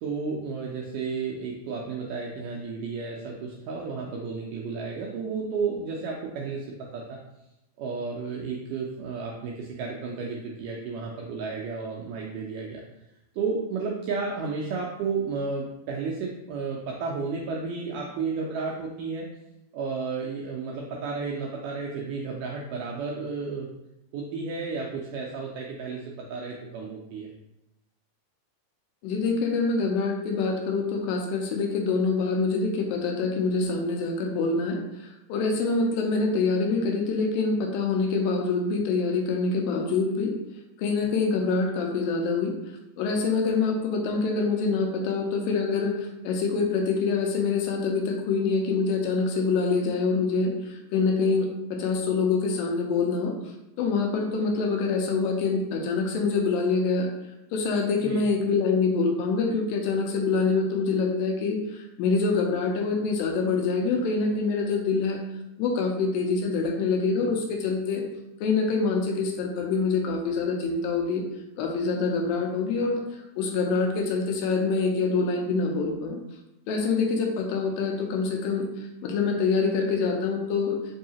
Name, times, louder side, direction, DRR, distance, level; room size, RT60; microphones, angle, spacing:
voice 1, 0.0-6.7 6.9-7.2 7.8-12.8 13.3-19.3 19.7-23.7 24.1-27.3 58.0-58.2, right 4 dB, 90° right, -2 dB, 1.8 m, -32 dB
voice 2, 29.0-40.3 40.8-42.5 43.0-53.3 53.8-57.1 57.5-65.2 65.6-68.0 68.4-71.2 71.6-76.2 76.7-80.8, left 4 dB, 80° left, 2 dB, 2.2 m, -25 dB
5.5 x 2.7 x 2.8 m, 0.91 s
omnidirectional pair, 4.2 m